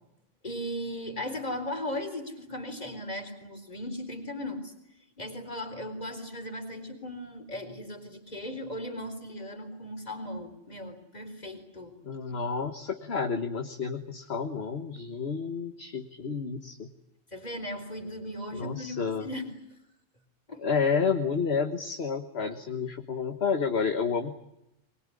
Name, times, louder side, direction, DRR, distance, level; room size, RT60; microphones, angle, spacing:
voice 1, 0.4-4.7 5.2-12.0 17.3-19.5 20.5-20.6, left 1 dB, 35° left, 6 dB, 4.1 m, -37 dB
voice 2, 12.0-16.9 18.5-19.3 20.6-24.3, left 5 dB, 60° left, 6 dB, 1.6 m, -30 dB
23.5 x 21.5 x 9.9 m, 0.88 s
omnidirectional pair, 1.2 m